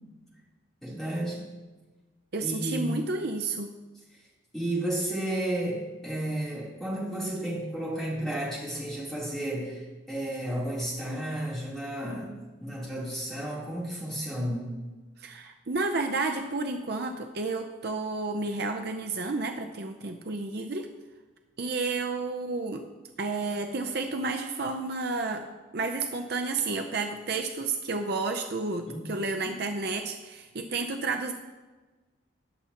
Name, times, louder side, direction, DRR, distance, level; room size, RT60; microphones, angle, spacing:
voice 1, 0.8-1.4 2.4-3.0 4.5-14.7 28.9-29.0, right 1 dB, ahead, -8 dB, 3.3 m, -32 dB
voice 2, 2.3-3.7 15.2-20.9 21.6-22.8 23.2-25.5 25.7-31.3, right 3 dB, 50° right, 5 dB, 0.6 m, -31 dB
20.0 x 7.0 x 2.9 m, 1.3 s
head